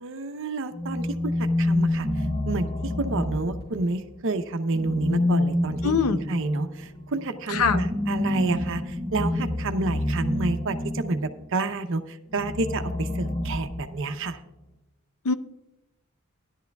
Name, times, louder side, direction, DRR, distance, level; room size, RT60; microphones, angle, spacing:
voice 1, 0.0-6.0 6.3-14.4, right 2 dB, 60° right, 8 dB, 0.7 m, -29 dB
sound 1, 0.7-4.0 4.7-11.3 12.3-14.2, left 1 dB, 75° left, 3.0 m, -27 dB
voice 2, 5.8-6.2 7.5-7.8 15.2-15.3, left 5 dB, 90° left, 11 dB, 0.7 m, -22 dB
15.5 x 11.0 x 2.3 m, 0.95 s
head